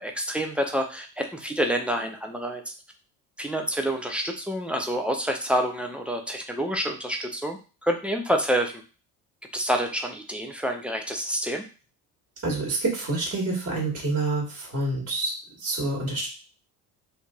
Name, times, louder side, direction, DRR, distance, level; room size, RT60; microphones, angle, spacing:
voice 1, 0.0-2.7 3.4-8.8 9.5-11.6, equal, 5° right, 3 dB, 0.4 m, -28 dB
voice 2, 12.4-15.3 15.6-16.3, right 2 dB, 30° right, -2 dB, 1.5 m, -27 dB
3.2 x 2.5 x 2.3 m, 0.35 s
hypercardioid pair, 60°, 48 cm